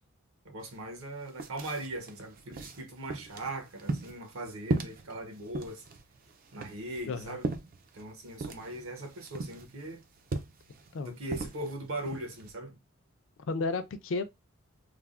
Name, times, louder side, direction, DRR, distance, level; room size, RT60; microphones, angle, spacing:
voice 1, 0.4-5.8 6.5-7.5 7.9-10.0 11.0-12.8, right 1 dB, 70° right, 0.8 m, -40 dB
sound 1, 0.6-0.7 1.0-12.5, right 3 dB, 40° right, 0.3 m, -38 dB
voice 2, 7.1-7.4 10.9-11.2 13.5-14.2, left 3 dB, 60° left, 0.4 m, -32 dB
3.4 x 2.0 x 2.3 m
head